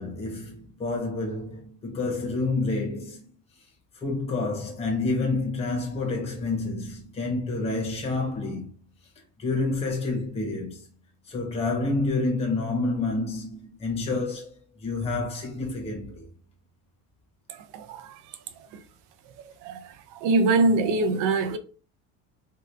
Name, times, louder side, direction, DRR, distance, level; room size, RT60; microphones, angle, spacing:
voice 1, 0.0-3.2 4.0-8.7 9.4-10.8 11.3-14.5 14.8-16.2, left 3 dB, 15° left, 0.8 m, -28 dB
voice 2, 17.7-18.1 19.6-19.8 20.2-21.6, right 3 dB, 55° right, 0.6 m, -23 dB
2.8 x 2.3 x 3.4 m
cardioid pair, 165°, 37 cm